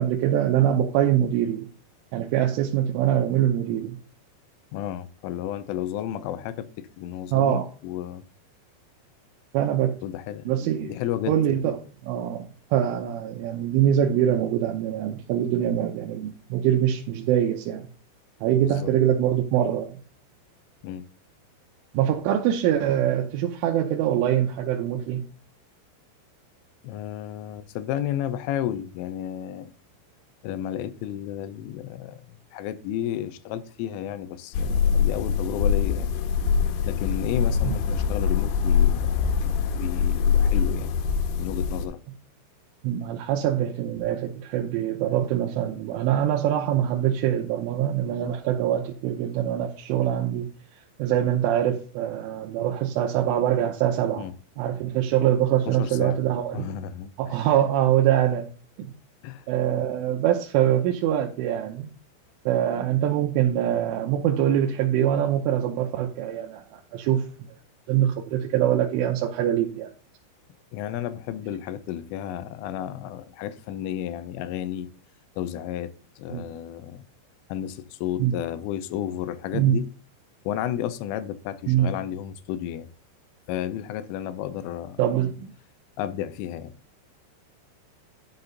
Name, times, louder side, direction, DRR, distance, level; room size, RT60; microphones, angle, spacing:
voice 1, 0.0-1.7 2.1-4.0 7.3-7.7 9.5-9.9 10.5-10.9 11.3-11.8 12.0-17.9 18.4-20.0 22.0-25.2 37.6-37.7 42.8-50.5 51.0-54.3 54.6-56.7 57.2-58.5 58.8-58.9 59.5-61.9 62.5-67.3 67.9-69.9 76.3-76.5 78.2-78.3 79.5-79.8 81.7-81.9 85.0-85.5, right 10 dB, 80° right, 3.3 m, -24 dB
voice 2, 4.7-8.2 10.0-10.5 10.9-11.4 18.6-18.9 20.8-21.1 26.8-29.7 30.4-32.2 32.5-36.1 36.9-39.3 39.7-40.9 41.4-42.0 54.2-54.3 55.7-56.2 56.5-57.5 59.2-59.4 70.7-74.9 75.4-77.1 77.5-79.9 80.5-82.9 83.5-85.0 86.0-86.7, left 11 dB, 90° left, 3.3 m, -32 dB
sound 1, 34.5-41.9, left 7 dB, 75° left, 3.1 m, -23 dB
11.5 x 6.6 x 4.0 m
omnidirectional pair, 5.8 m